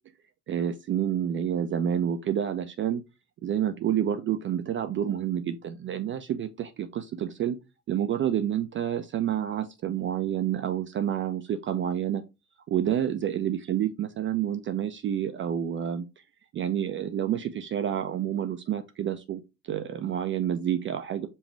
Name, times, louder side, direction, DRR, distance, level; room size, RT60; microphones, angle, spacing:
voice 1, 0.5-3.0 3.4-7.6 7.9-12.2 12.7-16.1 16.5-21.3, right 10 dB, 30° right, 0.4 m, -29 dB
5.2 x 2.3 x 3.1 m
figure-of-eight pair, 55°, 43 cm